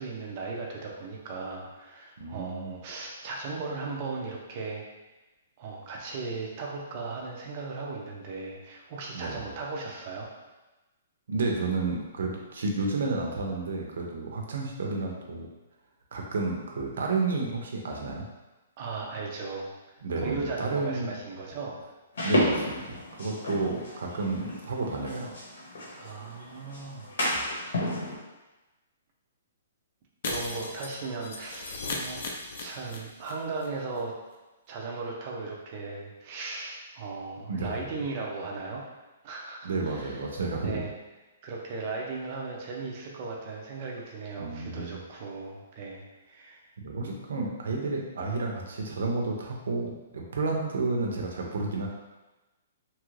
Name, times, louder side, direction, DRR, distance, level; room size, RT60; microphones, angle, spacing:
voice 1, 0.0-4.9 5.6-10.3 18.8-21.8 26.0-27.5 30.2-32.2 32.6-34.2 34.7-38.9 39.2-40.2 40.6-40.9 41.4-46.7, right 3 dB, 30° right, -1 dB, 0.5 m, -37 dB
voice 2, 2.2-2.8 9.1-9.5 11.3-15.5 16.1-18.2 20.0-21.1 22.2-25.3 27.3-27.4 37.5-37.7 39.6-40.8 44.4-45.0 46.8-51.9, right 3 dB, 65° right, 0 dB, 0.6 m, -31 dB
sound 1, 22.1-28.2, left 1 dB, 65° left, 0.9 m, -32 dB
Shatter, 30.2-33.3 33.6-33.7 34.0-34.1, left 2 dB, 45° left, 0.5 m, -36 dB
2.9 x 2.4 x 3.1 m, 1.1 s
hypercardioid pair, 175°, 0 cm